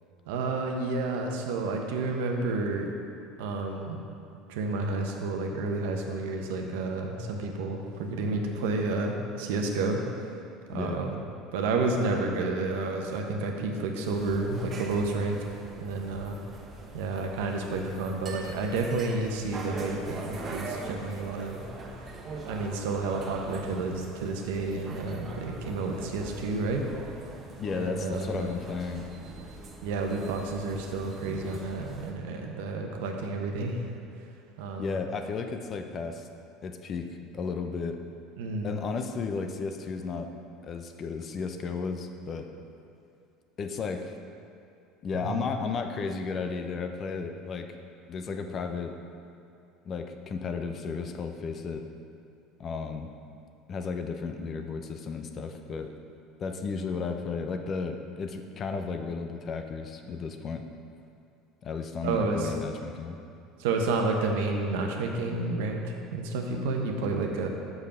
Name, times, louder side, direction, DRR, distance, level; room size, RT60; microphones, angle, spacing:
voice 1, 0.3-2.9 3.4-4.0 4.5-10.0 10.7-11.2 11.5-15.4 15.8-16.4 16.9-21.6 22.0-22.1 22.5-27.3 27.7-28.5 29.8-33.9 34.6-35.0 38.4-38.8 45.2-45.4 62.0-62.5 63.6-67.5, right 3 dB, 80° right, 2 dB, 0.9 m, -30 dB
voice 2, 10.7-11.0 27.6-29.1 34.8-36.3 36.6-38.0 38.6-40.3 40.6-42.5 43.6-44.2 45.0-47.7 48.1-48.9 49.8-51.8 52.6-53.1 53.7-55.9 56.4-60.7 61.6-63.2, left 5 dB, 40° left, 6 dB, 0.6 m, -34 dB
sound 1, 14.1-32.1, right 2 dB, 40° right, 1.0 m, -42 dB
6.2 x 5.2 x 5.6 m, 2.6 s
supercardioid pair, 90°, 0 cm